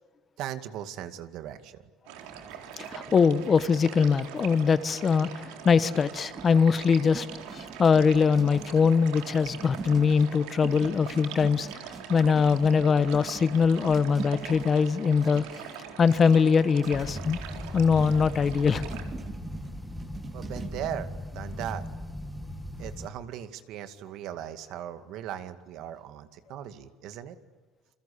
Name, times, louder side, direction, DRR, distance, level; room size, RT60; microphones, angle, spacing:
voice 1, 0.4-1.8 20.3-21.8 22.8-27.4, right 10 dB, 65° right, 10 dB, 2.2 m, -38 dB
sound 1, 2.1-19.0, right 9 dB, 90° right, 4.1 m, -43 dB
sound 2, 2.2-21.7, right 4 dB, 25° right, 2.8 m, -45 dB
voice 2, 2.8-7.3 7.5-11.7 12.1-15.4 16.0-17.4 17.7-18.9, left 5 dB, 30° left, 14 dB, 1.2 m, -22 dB
sound 3, 16.9-23.1, left 1 dB, ahead, 2.2 m, -38 dB
28.5 x 24.0 x 8.6 m, 1.3 s
cardioid pair, 140°, 0 cm